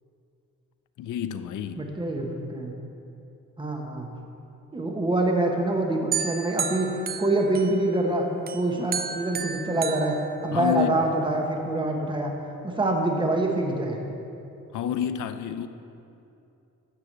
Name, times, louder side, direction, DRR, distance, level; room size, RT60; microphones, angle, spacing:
voice 1, 1.0-1.8 10.5-10.9 14.7-15.7, left 10 dB, 70° left, 0.6 m, -29 dB
voice 2, 1.8-2.7 3.6-4.1 4.7-8.3 8.5-10.2 10.4-12.3 12.6-14.0, right 2 dB, 15° right, 1.1 m, -25 dB
sound 1, 6.1-8.1 8.5-11.0, right 6 dB, 30° right, 0.4 m, -33 dB
12.5 x 4.9 x 7.4 m
cardioid pair, 150°, 31 cm